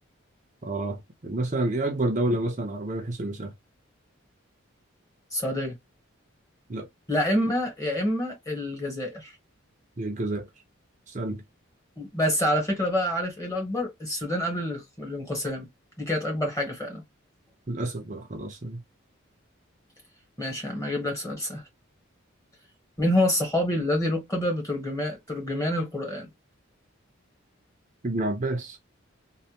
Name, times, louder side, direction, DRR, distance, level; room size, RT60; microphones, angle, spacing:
voice 1, 0.6-3.5 6.7-6.9 10.0-10.5 11.1-11.4 17.7-18.8 28.0-28.8, right 2 dB, 35° right, 0.6 m, -29 dB
voice 2, 5.3-5.7 7.1-9.3 12.0-15.7 16.0-17.0 20.4-21.6 23.0-26.3, left 1 dB, 15° left, 1.3 m, -27 dB
3.3 x 2.2 x 2.9 m
head